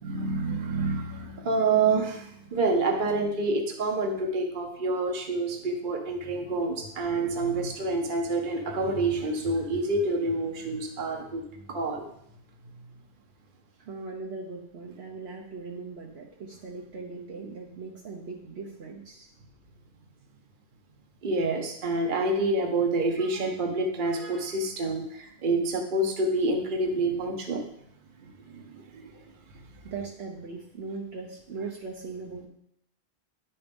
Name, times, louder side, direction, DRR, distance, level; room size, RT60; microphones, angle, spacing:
voice 1, 0.0-11.4 11.7-12.0 21.2-27.6 28.5-28.6 29.0-29.1, right 2 dB, 55° right, 3 dB, 1.1 m, -27 dB
voice 2, 13.8-19.3 29.8-32.5, right 4 dB, 80° right, -1 dB, 1.2 m, -39 dB
9.8 x 4.3 x 5.2 m, 0.73 s
omnidirectional pair, 1.1 m